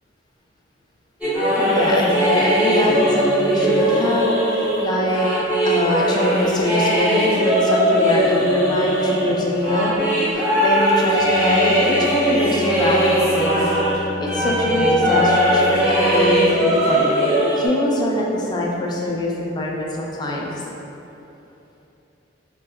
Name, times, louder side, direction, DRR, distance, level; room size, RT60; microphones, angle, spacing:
sound 1, 1.2-14.0 14.2-17.7, equal, 10° right, 1.1 m, -19 dB
voice 1, 1.6-5.4 5.6-13.7 14.2-17.1 17.6-20.5, left 1 dB, 20° left, -3 dB, 0.3 m, -23 dB
Bowed string instrument, 11.0-16.4, left 2 dB, 80° left, 0.5 m, -33 dB
2.9 x 2.2 x 3.3 m, 2.9 s
head